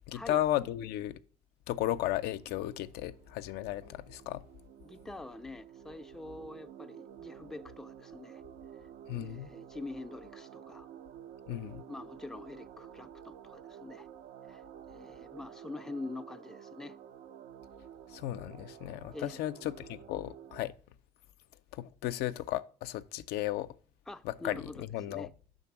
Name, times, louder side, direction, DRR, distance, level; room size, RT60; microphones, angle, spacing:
voice 1, 0.1-1.2 1.7-4.4 9.1-9.5 11.5-11.8 18.1-20.7 21.7-23.7 24.2-25.3, left 14 dB, 75° left, 0.4 m, -34 dB
sound 1, 2.2-20.7, right 9 dB, 75° right, 0.4 m, -51 dB
voice 2, 4.8-8.4 9.2-10.9 11.9-14.1 14.5-14.6 14.9-17.0 19.1-19.4 24.1-25.3, left 2 dB, 5° left, 0.3 m, -45 dB
5.2 x 3.9 x 5.8 m
supercardioid pair, 85°, 17 cm